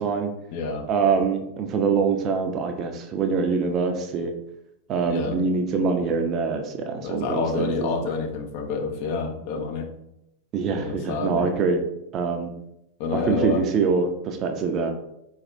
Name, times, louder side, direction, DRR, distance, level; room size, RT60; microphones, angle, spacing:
voice 1, 0.0-0.3 0.9-4.3 4.9-8.1 10.5-11.8 12.1-12.5 13.1-14.9, right 5 dB, 35° right, 5 dB, 0.4 m, -24 dB
voice 2, 0.5-0.9 5.1-5.4 7.0-9.9 10.7-11.5 13.0-13.6, left 5 dB, 45° left, 2 dB, 0.6 m, -28 dB
4.2 x 2.3 x 2.5 m, 0.82 s
figure-of-eight pair, 90°, 0 cm